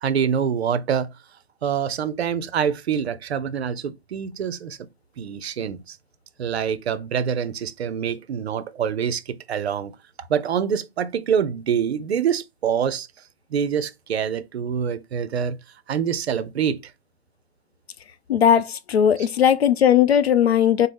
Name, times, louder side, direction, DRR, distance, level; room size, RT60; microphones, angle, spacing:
voice 1, 0.0-1.1 1.6-4.8 5.2-6.0 6.4-9.2 9.5-9.9 10.3-13.1 13.5-15.6 15.9-16.8, right 7 dB, 70° right, 0.5 m, -25 dB
voice 2, 18.3-20.9, left 9 dB, 70° left, 0.5 m, -18 dB
4.0 x 2.0 x 3.2 m
figure-of-eight pair, 125°, 33 cm